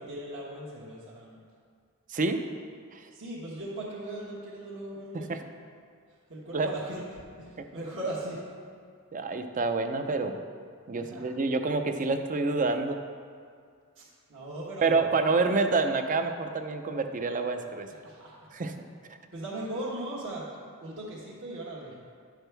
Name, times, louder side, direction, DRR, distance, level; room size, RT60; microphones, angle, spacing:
voice 1, 0.0-1.4 3.1-5.4 6.3-8.4 11.0-11.3 14.0-15.5 18.0-18.5 19.3-20.5 20.8-21.9, right 1 dB, 60° right, -7 dB, 1.3 m, -38 dB
voice 2, 2.1-2.4 2.9-3.0 5.3-5.4 6.5-6.7 7.6-7.7 9.1-10.4 10.9-13.0 14.8-17.9 18.5-18.7, right 3 dB, 35° right, 7 dB, 0.5 m, -27 dB
11.0 x 6.3 x 3.4 m, 2.2 s
head